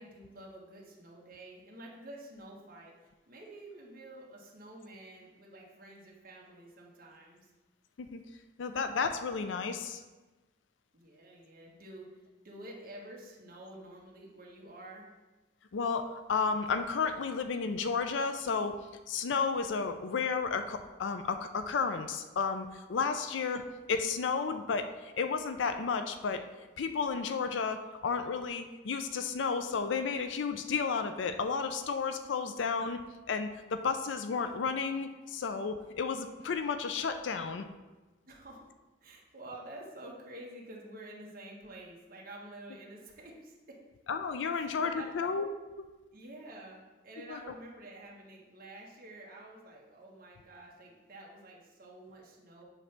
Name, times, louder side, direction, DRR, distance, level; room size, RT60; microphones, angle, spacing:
voice 1, 0.0-2.9 3.3-7.4 10.9-12.1 12.4-15.0 38.3-38.7 39.0-43.8 44.5-45.3 46.1-52.6, right 1 dB, 50° right, -2 dB, 1.4 m, -49 dB
voice 2, 8.6-10.0 15.7-18.8 19.1-23.6 23.9-26.4 26.8-37.6 44.1-45.5 47.3-47.4, left 5 dB, 85° left, 8 dB, 0.4 m, -32 dB
7.6 x 3.3 x 5.8 m, 1.2 s
head